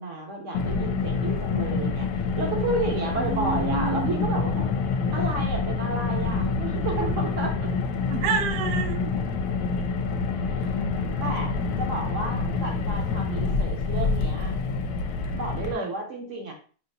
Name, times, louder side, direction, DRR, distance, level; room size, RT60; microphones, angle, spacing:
voice 1, 0.0-4.6 5.1-7.7 10.6-10.7 11.2-11.5 11.8-14.5 15.3-16.5, right 2 dB, 50° right, 1 dB, 1.2 m, -32 dB
Car, 0.5-15.7, left 4 dB, 80° left, 1.2 m, -27 dB
voice 2, 3.2-4.1 8.0-9.3 15.7-15.9, right 6 dB, 75° right, 8 dB, 1.1 m, -29 dB
5.4 x 2.8 x 2.7 m, 0.39 s
omnidirectional pair, 1.8 m